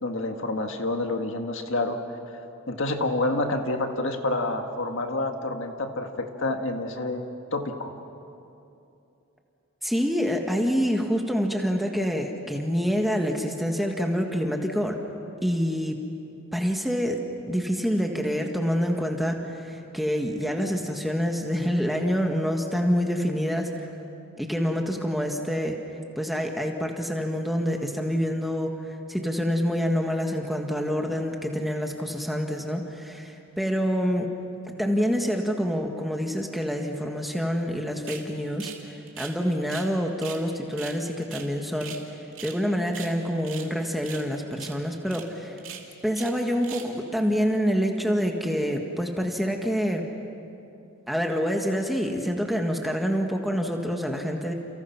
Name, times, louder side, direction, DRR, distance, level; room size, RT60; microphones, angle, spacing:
voice 1, 0.0-2.0 2.7-8.0, left 2 dB, 60° left, 5 dB, 1.8 m, -28 dB
voice 2, 9.8-15.0 15.4-16.0 16.5-23.9 24.4-25.8 26.1-34.3 34.8-42.0 42.4-45.6 46.0-50.1 51.1-54.5, equal, ahead, 2 dB, 1.6 m, -27 dB
sound 1, 38.1-38.3 38.6-38.8 39.1-39.9 40.2-40.4 40.7-42.0 42.3-42.6 42.9-43.7 44.0-44.3 44.5-44.8 45.1-45.2 45.6-46.4 46.6-46.9, right 9 dB, 60° right, 2.8 m, -41 dB
29.5 x 29.5 x 5.9 m, 2.8 s
head